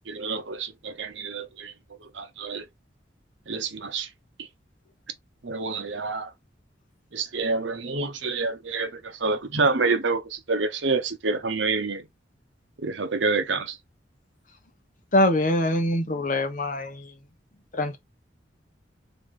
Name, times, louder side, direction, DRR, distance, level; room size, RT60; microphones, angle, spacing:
voice 1, 0.1-1.7 2.1-2.6 3.5-4.1 5.4-6.3 7.1-12.0 12.8-13.8, right 3 dB, 85° right, 0.9 m, -27 dB
voice 2, 15.1-17.1 17.7-18.0, left 1 dB, 45° left, 1.0 m, -23 dB
3.5 x 3.3 x 3.7 m
head